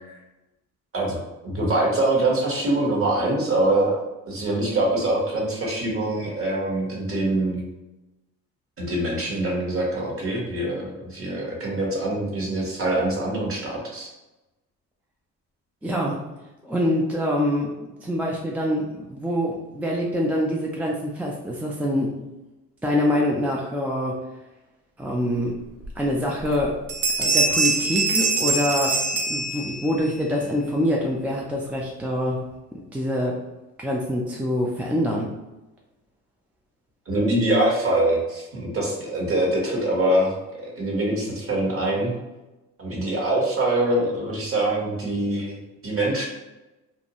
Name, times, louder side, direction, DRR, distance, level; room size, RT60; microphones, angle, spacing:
voice 1, 0.9-4.0 4.3-7.6 8.8-14.1 37.1-42.1 42.8-45.6 45.8-46.3, right 1 dB, 35° right, -2 dB, 1.2 m, -24 dB
voice 2, 15.8-16.2 16.6-22.2 22.8-24.2 25.0-25.6 26.0-26.8 27.2-32.4 32.9-33.4 33.8-35.3, left 1 dB, 5° right, -3 dB, 0.4 m, -25 dB
Bell, 25.8-25.9 26.4-26.6 26.9-30.0, right 3 dB, 60° right, 0.7 m, -23 dB
2.5 x 2.2 x 2.9 m, 1.0 s
supercardioid pair, 70°, 36 cm